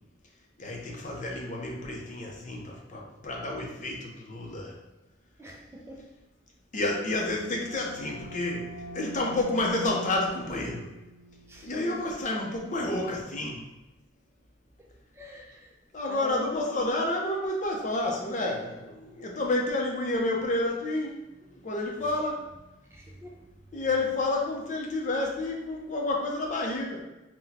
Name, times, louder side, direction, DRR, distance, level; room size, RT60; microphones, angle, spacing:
voice 1, 0.6-4.8 6.7-8.6 8.9-10.9 11.6-13.6 15.9-21.1 21.6-22.5 23.7-27.0, left 2 dB, 45° left, 0 dB, 0.6 m, -30 dB
voice 2, 5.4-6.0 11.5-12.0 14.8-14.9 15.1-15.7 16.1-16.5 22.9-23.4, left 1 dB, 15° right, -1 dB, 0.4 m, -44 dB
sound 1, 7.1-12.6, right 2 dB, 90° right, 0.7 m, -45 dB
4.1 x 2.2 x 3.9 m, 0.98 s
head